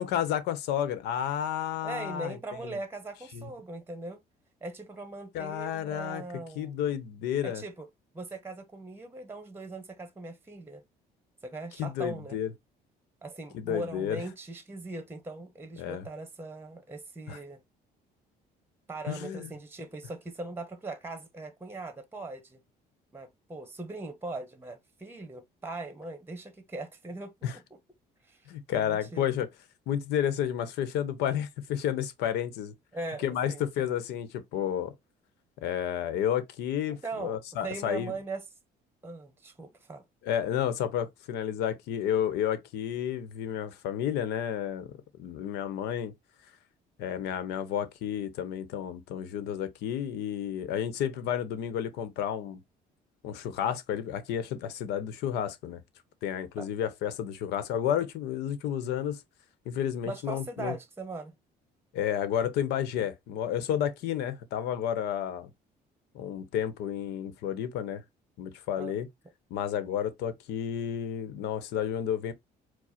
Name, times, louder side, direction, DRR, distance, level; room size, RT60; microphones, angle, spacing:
voice 1, 0.0-2.4 2.6-2.8 3.3-3.5 5.3-6.2 6.6-7.6 11.8-12.5 13.5-14.2 15.8-16.1 17.3-17.4 19.1-19.5 27.4-27.5 28.5-29.5 29.9-32.7 33.2-34.9 35.6-38.1 40.3-44.9 45.2-46.1 47.0-52.6 53.2-55.8 56.2-59.2 59.6-60.7 61.9-65.5 66.1-68.0 68.4-69.1 69.5-72.3, left 10 dB, 85° left, 0.9 m, -31 dB
voice 2, 1.8-4.2 4.6-6.7 7.4-7.9 8.1-10.8 11.4-12.4 13.2-17.6 18.9-22.6 23.1-27.8 28.2-29.3 32.9-33.9 36.9-38.4 39.0-40.0 56.6-56.7 60.0-61.3 68.8-68.9, right 2 dB, 15° right, 0.9 m, -40 dB
4.8 x 2.1 x 4.3 m
cardioid pair, 110°, 17 cm